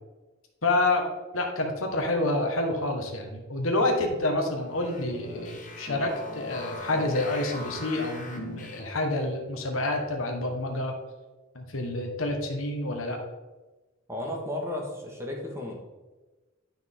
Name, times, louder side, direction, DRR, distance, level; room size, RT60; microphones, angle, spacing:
voice 1, 0.6-1.0 1.3-10.9 11.5-13.2, left 2 dB, 75° left, 2 dB, 1.5 m, -28 dB
sound 1, 4.7-9.2, left 3 dB, 40° left, 1.3 m, -39 dB
voice 2, 14.1-15.8, left 1 dB, 15° right, -1 dB, 1.7 m, -34 dB
10.5 x 6.0 x 3.7 m, 1.2 s
head